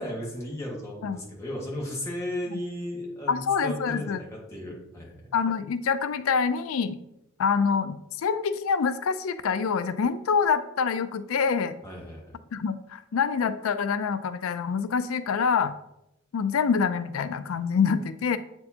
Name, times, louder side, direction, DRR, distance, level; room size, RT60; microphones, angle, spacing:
voice 1, 0.0-5.3 11.8-12.2, left 1 dB, 15° left, -4 dB, 1.6 m, -35 dB
voice 2, 3.3-4.2 5.3-7.0 7.4-11.7 12.5-15.7 16.3-18.4, left 6 dB, 75° left, 12 dB, 0.4 m, -26 dB
7.6 x 4.5 x 2.8 m, 0.82 s
head